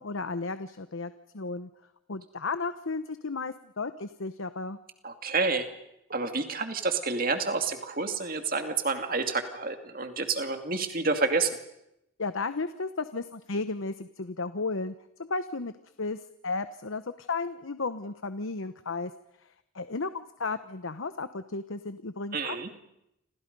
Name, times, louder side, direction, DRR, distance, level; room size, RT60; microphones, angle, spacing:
voice 1, 0.0-1.7 2.1-4.8 12.2-14.9 15.2-15.7 16.0-19.1 19.4-19.5 19.7-22.8, left 3 dB, 70° left, 11 dB, 0.9 m, -34 dB
voice 2, 5.0-5.7 6.1-11.5 22.3-22.7, right 4 dB, 40° right, 6 dB, 2.4 m, -29 dB
29.0 x 27.0 x 5.4 m, 0.83 s
head